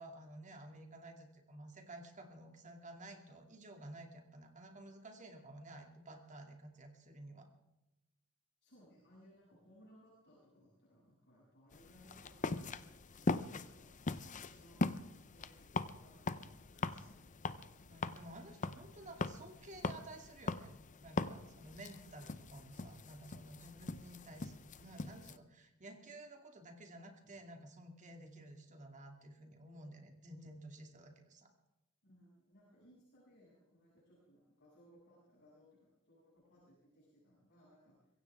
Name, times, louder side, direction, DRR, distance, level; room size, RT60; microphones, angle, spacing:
voice 1, 0.0-7.5 17.8-20.7 21.0-31.5, right 1 dB, 35° right, 3 dB, 2.5 m, -53 dB
voice 2, 8.6-13.9 14.2-17.7 32.0-38.1, equal, 50° left, -7 dB, 6.8 m, -65 dB
sound 1, 11.7-25.4, left 3 dB, 35° left, 0.7 m, -41 dB
24.0 x 15.5 x 3.6 m, 0.96 s
head